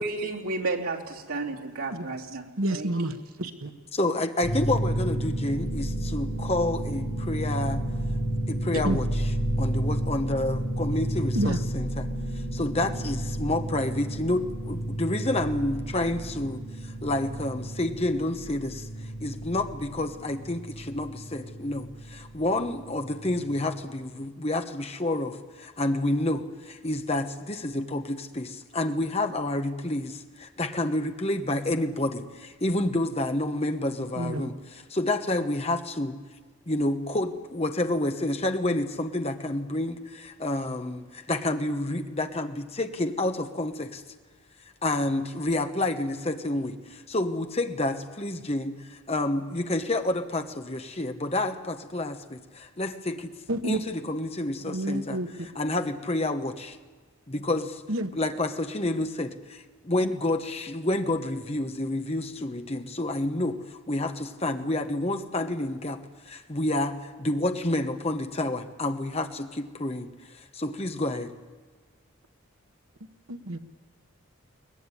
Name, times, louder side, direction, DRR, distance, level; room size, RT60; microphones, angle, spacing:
voice 1, 0.0-2.9, right 3 dB, 85° right, -2 dB, 3.4 m, -32 dB
voice 2, 2.6-3.2 3.6-3.7 8.7-9.0 11.3-11.6 34.2-34.5 53.5-53.8 54.7-55.5 57.9-58.1 73.3-73.6, right 1 dB, 70° right, 7 dB, 1.4 m, -29 dB
voice 3, 3.9-7.9 8.5-9.1 9.6-12.1 12.5-18.9 19.2-34.5 34.9-36.2 36.7-44.0 44.8-53.3 53.6-55.2 55.5-56.8 57.3-57.8 58.1-71.3, left 1 dB, 25° left, 7 dB, 1.2 m, -29 dB
sound 1, 4.4-23.9, right 1 dB, 85° left, 7.0 m, -31 dB
22.5 x 19.0 x 9.9 m, 1.4 s
head